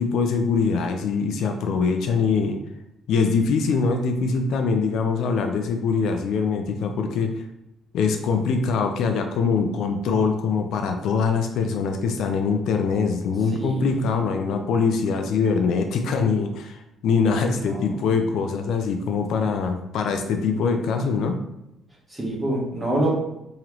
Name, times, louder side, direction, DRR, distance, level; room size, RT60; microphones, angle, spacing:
voice 1, 0.0-2.6 3.1-7.4 7.9-21.4, left 5 dB, 70° left, 5 dB, 0.4 m, -23 dB
voice 2, 13.5-13.9 17.6-18.0 22.1-23.1, right 1 dB, 15° right, -4 dB, 1.2 m, -26 dB
3.7 x 3.0 x 3.0 m, 0.86 s
cardioid pair, 135°, 0 cm